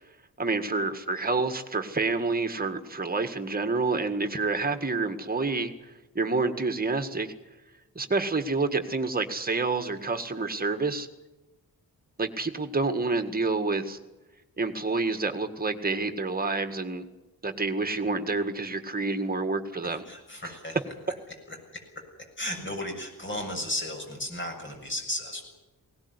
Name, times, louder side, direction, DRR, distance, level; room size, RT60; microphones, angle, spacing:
voice 1, 0.4-5.7 6.2-7.3 8.0-11.1 12.2-14.0 14.6-17.1 17.4-20.0, right 3 dB, 25° right, 7 dB, 1.9 m, -28 dB
voice 2, 19.8-20.8 21.5-22.0 22.4-25.5, left 1 dB, 35° left, 3 dB, 7.3 m, -35 dB
20.5 x 18.5 x 9.8 m, 1.1 s
wide cardioid pair, 145°, 35 cm